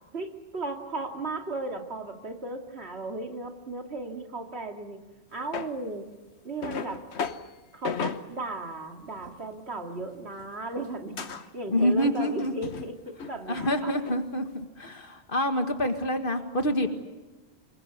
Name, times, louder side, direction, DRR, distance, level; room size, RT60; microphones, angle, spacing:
voice 1, 0.1-5.0 5.3-6.1 6.4-7.1 7.7-13.9, right 2 dB, 75° right, 3 dB, 2.7 m, -36 dB
sound 1, 5.5-5.7 6.6-7.5 7.8-8.3 9.1-9.3 10.0-10.5 10.8-10.9 11.2-11.5 12.0-12.9 13.2-14.2, left 6 dB, 85° left, 1.4 m, -35 dB
voice 2, 11.7-12.5 13.5-16.9, equal, 55° left, 6 dB, 2.2 m, -27 dB
26.0 x 22.0 x 8.3 m, 1.1 s
omnidirectional pair, 1.1 m